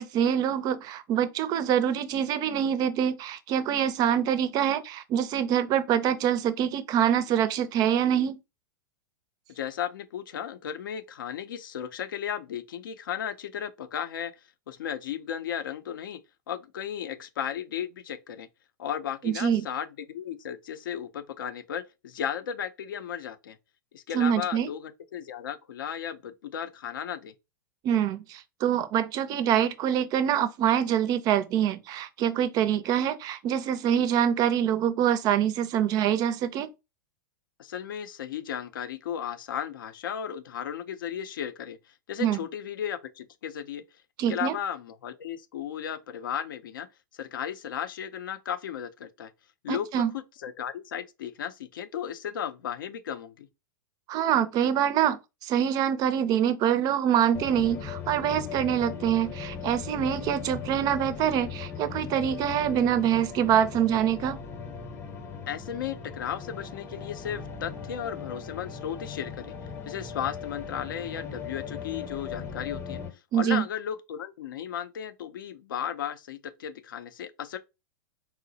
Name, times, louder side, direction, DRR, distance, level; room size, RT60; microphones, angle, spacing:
voice 1, 0.0-8.4 19.2-19.6 24.1-24.7 27.8-36.7 42.2-42.4 44.2-44.5 49.7-50.1 54.1-64.4 73.3-73.6, right 9 dB, 35° right, 0.4 m, -25 dB
voice 2, 9.5-14.3 14.7-16.2 16.5-18.5 18.8-23.6 23.9-27.3 37.6-41.8 42.1-43.8 44.3-46.9 47.2-49.3 49.6-53.5 65.5-69.5 69.9-73.0 73.3-77.6, left 9 dB, 75° left, 0.4 m, -35 dB
sound 1, 57.3-73.1, left 6 dB, 20° left, 0.7 m, -38 dB
3.8 x 2.0 x 2.7 m
hypercardioid pair, 110°, 11 cm